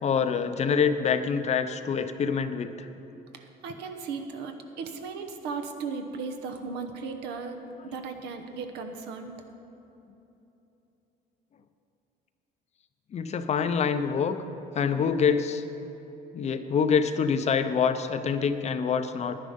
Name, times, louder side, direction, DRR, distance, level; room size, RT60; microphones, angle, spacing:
voice 1, 0.0-2.7 13.1-14.4 14.7-15.6 16.3-19.4, left 6 dB, 40° left, 10 dB, 0.6 m, -26 dB
voice 2, 3.3-9.4, right 4 dB, 85° right, 6 dB, 1.0 m, -36 dB
10.5 x 10.0 x 5.3 m, 3.0 s
cardioid pair, 110°, 17 cm